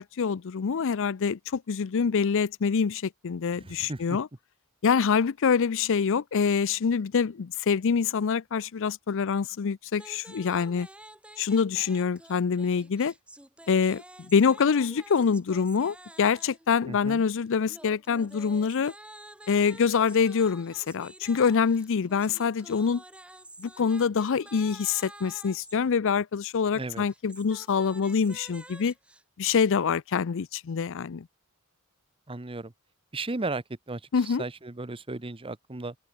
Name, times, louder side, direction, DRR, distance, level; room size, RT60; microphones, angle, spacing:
voice 1, 0.0-4.3 4.8-10.9 11.4-13.1 13.7-18.9 19.5-23.0 23.6-28.9 29.4-31.3 34.1-34.4, left 6 dB, 60° left, 0.5 m, -25 dB
voice 2, 3.6-4.2 16.9-17.2 26.7-27.1 32.3-32.7 33.1-35.9, right 2 dB, 25° right, 0.9 m, -35 dB
sound 1, 9.9-16.7 17.7-25.8 27.0-29.2, right 1 dB, 5° right, 1.8 m, -49 dB
head